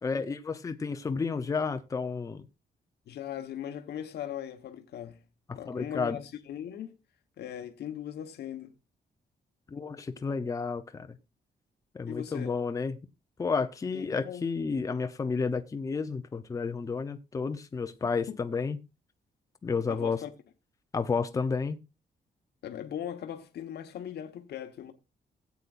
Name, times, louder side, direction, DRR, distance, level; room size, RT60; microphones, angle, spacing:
voice 1, 0.0-2.5 5.7-6.2 9.7-11.2 11.9-13.0 13.4-18.8 19.6-20.2 20.9-21.8, left 5 dB, 20° left, 0.6 m, -31 dB
voice 2, 3.1-5.2 5.5-7.0 7.4-8.7 12.1-12.6 13.9-14.4 18.3-18.4 19.9-20.3 22.6-24.9, left 10 dB, 90° left, 1.1 m, -39 dB
16.5 x 8.3 x 2.5 m
wide cardioid pair, 180°, 17 cm